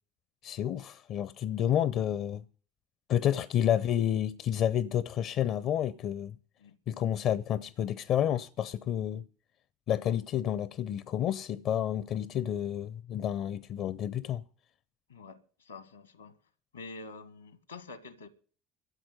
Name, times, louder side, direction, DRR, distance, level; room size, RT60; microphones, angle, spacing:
voice 1, 0.4-2.4 3.1-6.4 6.9-9.2 9.9-14.4, left 10 dB, 50° left, 0.6 m, -30 dB
voice 2, 15.1-16.4 16.7-18.3, left 3 dB, 80° left, 1.3 m, -47 dB
13.0 x 7.8 x 9.7 m
figure-of-eight pair, 65°, 0 cm